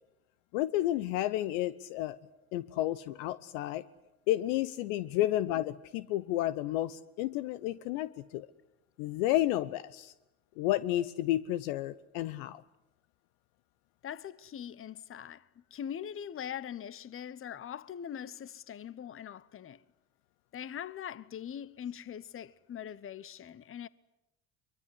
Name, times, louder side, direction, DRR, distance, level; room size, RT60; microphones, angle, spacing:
voice 1, 0.5-2.2 2.5-3.8 4.3-8.5 9.0-10.1 10.6-12.6, left 14 dB, 60° left, 0.9 m, -31 dB
voice 2, 14.0-19.8 20.5-23.9, left 9 dB, 30° left, 1.0 m, -42 dB
24.0 x 23.0 x 9.9 m
figure-of-eight pair, 60°, 43 cm